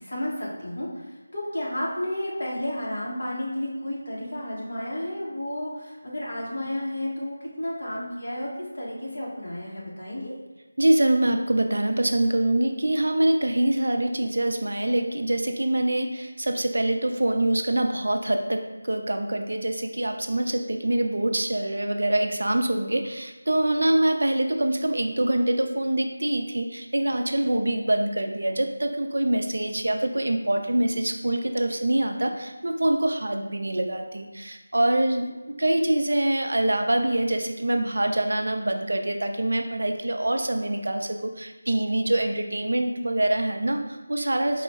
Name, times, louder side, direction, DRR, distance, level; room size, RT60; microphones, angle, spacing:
voice 1, 0.0-8.5 8.7-10.3, left 1 dB, 45° left, -5 dB, 1.1 m, -32 dB
voice 2, 10.8-44.6, right 1 dB, 65° right, 5 dB, 0.4 m, -25 dB
4.3 x 2.1 x 3.3 m, 1.1 s
figure-of-eight pair, 180°, 0 cm